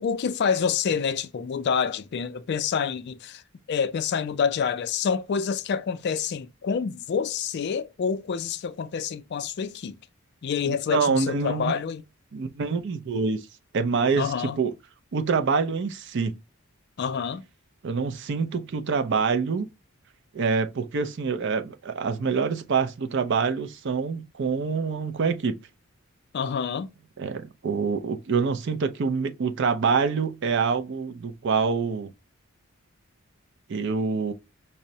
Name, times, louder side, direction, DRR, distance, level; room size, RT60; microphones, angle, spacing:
voice 1, 0.0-3.4 3.7-9.9 10.4-12.0 14.2-14.6 17.0-17.4 26.3-26.9, left 6 dB, 50° left, 0.3 m, -27 dB
voice 2, 10.7-11.8 12.3-13.4 13.7-14.7 15.1-16.4 17.8-19.7 20.3-25.6 27.2-32.1 33.7-34.3, right 5 dB, 50° right, 0.4 m, -26 dB
5.4 x 2.0 x 2.6 m
head